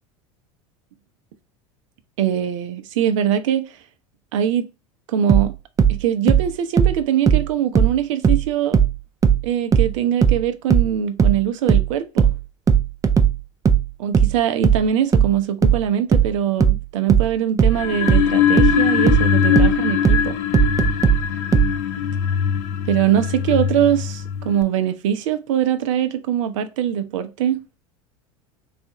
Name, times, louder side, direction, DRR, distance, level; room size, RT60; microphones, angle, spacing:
voice 1, 2.2-3.6 4.3-4.7 5.1-5.5 5.9-8.8 9.4-12.3 14.0-20.4 22.9-27.6, right 10 dB, 70° right, 0.6 m, -22 dB
sound 1, 5.3-8.5 8.7-21.8, right 7 dB, 20° right, 0.5 m, -17 dB
sound 2, 17.7-24.6, left 9 dB, 55° left, 0.4 m, -21 dB
3.4 x 2.4 x 4.0 m
hypercardioid pair, 85°, 17 cm